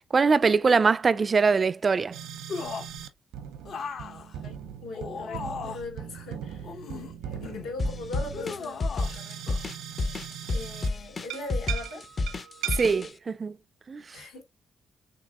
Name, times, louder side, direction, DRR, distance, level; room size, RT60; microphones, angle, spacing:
voice 1, 0.1-2.2 12.7-13.6 13.9-14.2, right 4 dB, 35° right, 0.3 m, -23 dB
sound 1, 2.1-3.1 3.3-10.9 11.3-13.1, right 10 dB, 90° right, 0.8 m, -39 dB
sound 2, 2.5-3.0 3.7-6.0 6.6-7.7 8.3-9.2 9.5-9.6, left 5 dB, 65° left, 0.9 m, -37 dB
voice 2, 4.4-9.5 10.5-12.1 14.1-14.4, left 2 dB, 90° left, 3.1 m, -41 dB
sound 3, 7.8-13.1, left 3 dB, 40° left, 0.6 m, -30 dB
6.6 x 2.8 x 2.4 m
cardioid pair, 90°, 0 cm